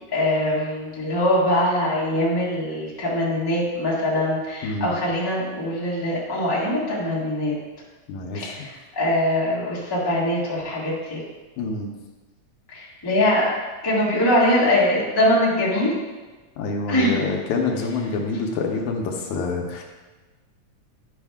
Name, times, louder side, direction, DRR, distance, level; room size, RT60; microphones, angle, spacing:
voice 1, 0.1-7.5 8.3-11.2 12.7-13.5 13.8-15.9 16.9-17.2, left 1 dB, 10° left, -7 dB, 1.0 m, -22 dB
voice 2, 4.6-4.9 8.1-8.6 11.6-11.9 16.6-19.8, left 3 dB, 75° left, 1 dB, 2.1 m, -26 dB
10.0 x 5.3 x 3.5 m, 1.3 s
omnidirectional pair, 3.5 m